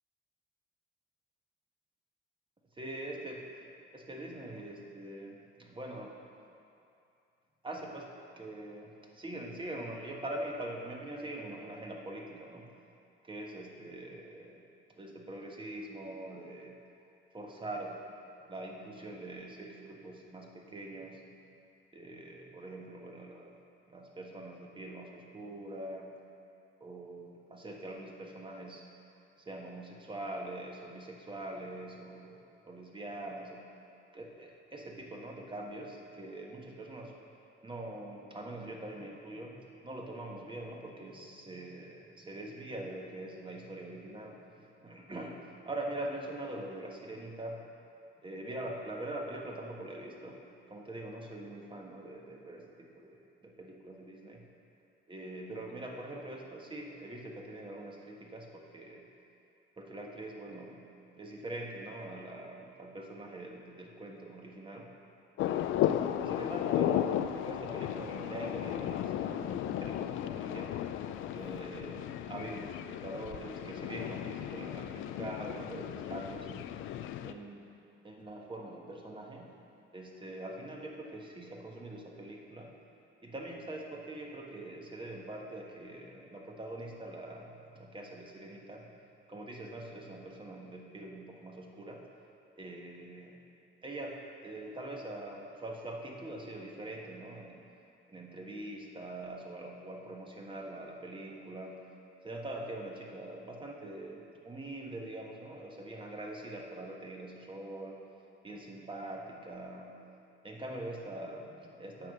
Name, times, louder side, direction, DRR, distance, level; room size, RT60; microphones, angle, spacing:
voice 1, 2.7-3.5 3.9-6.1 7.6-8.1 8.4-12.7 13.2-14.7 14.9-16.8 17.3-18.0 18.5-21.2 21.9-23.6 23.9-26.1 26.8-28.9 29.4-33.6 34.1-37.2 37.6-45.4 45.7-47.6 48.2-50.4 50.7-54.5 55.1-59.0 59.8-60.9 61.2-64.9 65.8-70.7 71.1-76.8 77.2-77.7 78.0-79.6 79.9-82.7 83.2-88.9 89.3-92.0 92.6-93.4 93.8-97.6 98.1-101.8 102.2-108.0 108.4-110.0 110.4-112.1, right 1 dB, 25° right, 0 dB, 1.4 m, -43 dB
sound 1, 65.4-77.3, left 11 dB, 80° left, 0.4 m, -34 dB
8.9 x 5.7 x 6.5 m, 2.6 s
cardioid pair, 90°, 20 cm